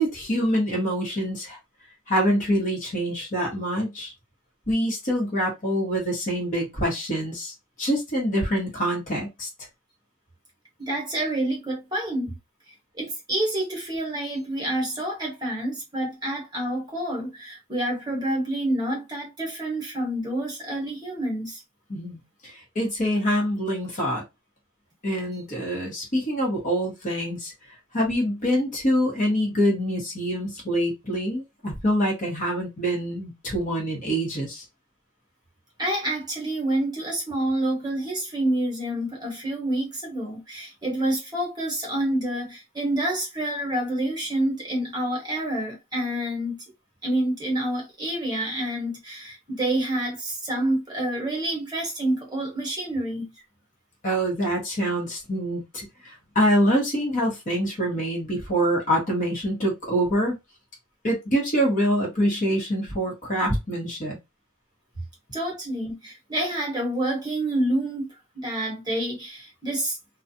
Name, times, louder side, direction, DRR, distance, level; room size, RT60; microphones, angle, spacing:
voice 1, 0.0-1.6 2.1-4.1 4.7-9.5 21.9-24.2 25.0-27.5 27.9-34.6 54.0-60.4 61.0-64.2, equal, 35° left, 1.1 m, -25 dB
voice 2, 10.8-12.3 13.0-21.6 35.8-46.6 47.0-53.3 65.3-68.1 68.3-70.0, right 1 dB, 20° right, 1.1 m, -28 dB
2.3 x 2.3 x 2.7 m
head